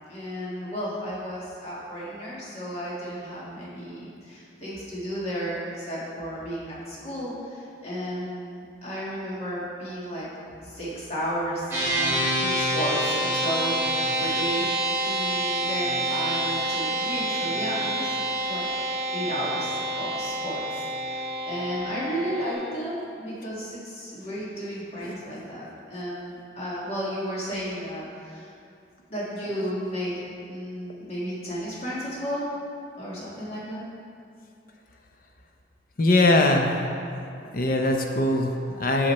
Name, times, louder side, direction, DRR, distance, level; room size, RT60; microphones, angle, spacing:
voice 1, 0.1-10.3 10.6-13.8 14.2-14.7 15.0-18.2 18.5-18.7 19.1-28.5 29.1-32.5 33.0-33.8, equal, 35° left, -8 dB, 1.7 m, -33 dB
sound 1, 11.7-22.5, right 1 dB, 10° right, 1.5 m, -27 dB
voice 2, 36.0-36.7 37.5-39.1, left 2 dB, 50° left, 3 dB, 0.7 m, -21 dB
7.7 x 6.5 x 4.2 m, 2.5 s
head